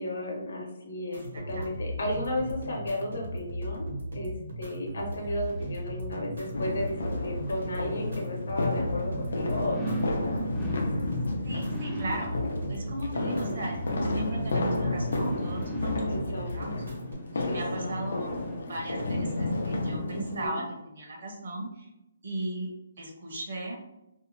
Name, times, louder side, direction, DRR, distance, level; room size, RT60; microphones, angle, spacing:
voice 1, 0.0-3.9 4.1-10.4 13.1-13.6 16.1-16.8 17.4-18.3 20.1-20.6, left 1 dB, 65° left, -1 dB, 0.9 m, -34 dB
voice 2, 1.1-2.0 11.4-12.4 12.7-16.8 17.3-18.3 18.6-20.6 20.9-21.9 22.2-22.7 23.0-23.8, right 1 dB, 50° right, 1 dB, 0.7 m, -36 dB
sound 1, 1.1-17.1, equal, 85° right, 1.0 m, -37 dB
sound 2, 5.2-19.1 19.6-19.7, right 1 dB, 5° left, 0.4 m, -41 dB
sound 3, 6.5-20.5, left 2 dB, 80° left, 0.5 m, -32 dB
2.6 x 2.1 x 2.9 m, 0.90 s
hypercardioid pair, 175°, 0 cm